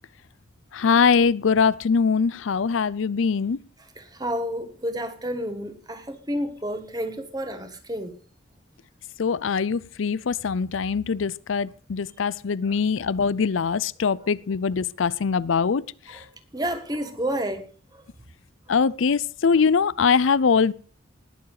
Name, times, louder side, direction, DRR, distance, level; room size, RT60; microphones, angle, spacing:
voice 1, 0.7-3.6 9.2-16.2 18.7-20.7, left 5 dB, 85° left, 0.5 m, -22 dB
voice 2, 3.9-8.1 16.1-16.2 16.5-17.6 17.9-18.0, equal, 20° right, 1.6 m, -30 dB
19.5 x 7.2 x 4.9 m
head